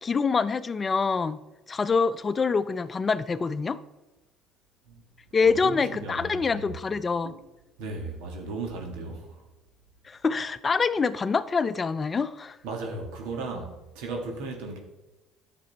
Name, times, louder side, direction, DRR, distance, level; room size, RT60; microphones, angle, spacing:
voice 1, 0.0-1.4 1.7-3.8 5.3-7.3 10.0-12.6, left 5 dB, 30° left, 0.5 m, -25 dB
voice 2, 5.4-6.7 7.2-7.4 7.8-9.4 12.6-14.8, right 3 dB, 80° right, 1.8 m, -36 dB
10.0 x 6.9 x 4.1 m
supercardioid pair, 75°, 0 cm